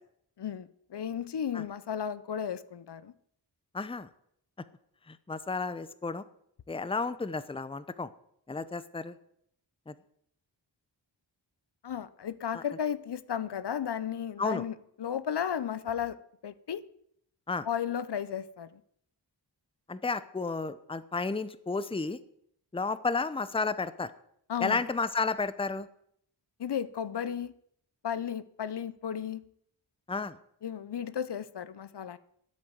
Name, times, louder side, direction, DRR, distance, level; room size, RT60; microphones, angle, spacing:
voice 1, 0.4-3.1 11.8-16.2 16.4-16.8 17.6-18.8 24.5-24.8 26.6-27.5 28.0-29.5 30.6-32.2, left 8 dB, 65° left, 16 dB, 0.8 m, -34 dB
voice 2, 3.7-4.1 5.1-6.2 6.7-8.1 8.5-9.2 9.9-10.0 12.5-12.6 14.4-14.6 17.5-17.7 19.9-22.2 22.7-24.1 24.6-25.9 30.1-30.4, left 4 dB, 15° left, 14 dB, 0.7 m, -32 dB
10.5 x 8.6 x 7.9 m, 0.69 s
wide cardioid pair, 80°, 44 cm